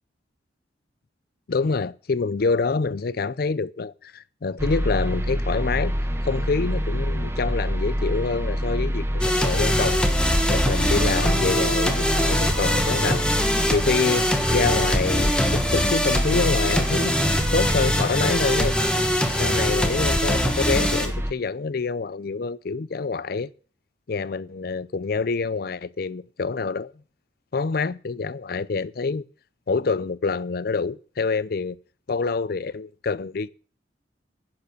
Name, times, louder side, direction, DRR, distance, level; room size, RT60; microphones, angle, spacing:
voice 1, 1.5-5.9 6.2-18.8 19.3-23.5 24.1-26.9 27.5-29.2 29.7-31.8 32.1-33.5, left 4 dB, 55° left, 0.5 m, -26 dB
sound 1, 4.6-21.3, equal, 15° right, 1.1 m, -27 dB
sound 2, 9.2-21.1, left 1 dB, 5° left, 1.4 m, -23 dB
10.5 x 6.8 x 8.1 m
head